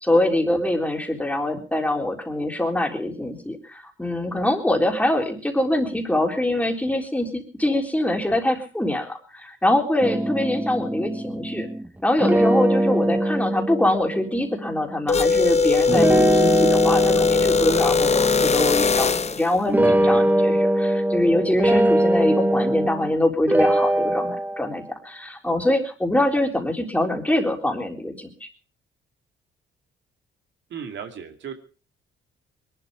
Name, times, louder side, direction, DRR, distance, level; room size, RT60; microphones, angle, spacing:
voice 1, 0.0-11.7 12.0-28.5, left 1 dB, 5° left, 2 dB, 3.7 m, -24 dB
sound 1, 10.0-11.8 12.2-14.7 15.9-19.2 19.7-23.1 23.5-24.8, right 1 dB, 10° right, 0.8 m, -22 dB
sound 2, 15.1-19.5, left 4 dB, 35° left, 0.9 m, -20 dB
voice 2, 30.7-31.5, right 7 dB, 65° right, 5 dB, 2.4 m, -35 dB
21.0 x 12.0 x 4.9 m, 0.39 s
cardioid pair, 90°, 20 cm